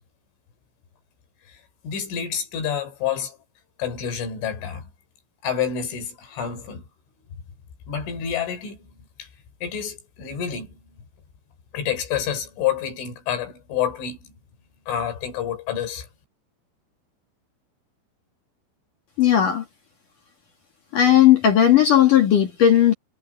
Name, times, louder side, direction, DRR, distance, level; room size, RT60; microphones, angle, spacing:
voice 1, 1.5-3.4 3.8-4.9 5.4-6.8 7.9-9.3 9.6-11.0 11.7-14.3 14.9-16.1, left 8 dB, 75° left, 6.7 m, -28 dB
voice 2, 19.2-19.6 20.9-22.9, left 10 dB, 55° left, 2.8 m, -16 dB
omnidirectional pair, 5.6 m